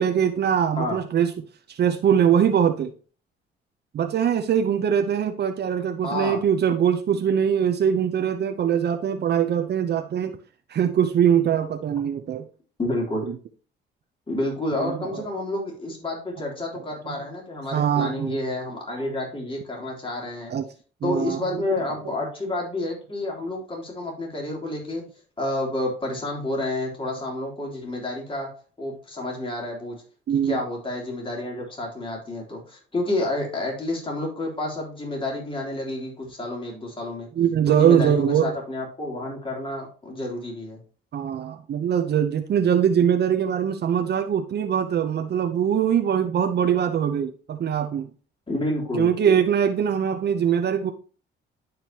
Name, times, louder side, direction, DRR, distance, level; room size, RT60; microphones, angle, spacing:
voice 1, 0.0-1.3 1.7-2.9 3.9-10.4 10.7-12.4 13.3-13.4 14.7-15.2 17.1-17.2 17.7-18.4 20.5-20.6 21.0-21.6 30.3-30.6 37.4-38.5 41.1-48.1 48.9-50.9, right 8 dB, 55° right, 0.8 m, -22 dB
voice 2, 6.0-6.4 12.8-13.3 14.3-20.5 21.0-25.0 25.4-28.5 28.8-30.0 30.4-37.3 37.7-40.8 48.5-49.1, left 2 dB, 25° left, 3.3 m, -29 dB
11.0 x 5.1 x 2.9 m
cardioid pair, 90°, 20 cm